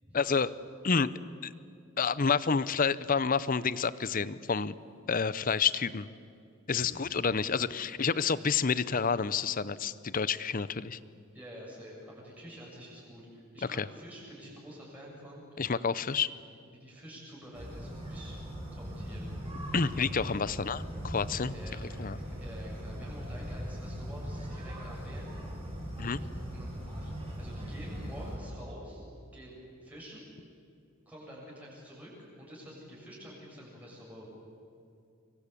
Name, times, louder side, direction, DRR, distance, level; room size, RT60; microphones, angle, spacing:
voice 1, 0.1-0.5 0.8-1.1 1.4-1.5 2.0-4.7 5.1-6.1 6.7-11.0 13.8-13.9 15.6-16.3 19.7-21.5 22.0-22.2 26.0-26.2, left 5 dB, 40° left, 17 dB, 0.7 m, -29 dB
voice 2, 11.3-15.4 16.1-16.3 16.7-18.4 18.7-19.3 21.5-25.3 26.0-26.2 26.5-26.7 27.0-29.0 29.3-30.2 31.1-34.3, equal, 5° right, -5 dB, 7.2 m, -48 dB
sound 1, 17.5-28.4, equal, 25° right, 7.0 m, -40 dB
25.5 x 23.5 x 8.5 m, 2.5 s
head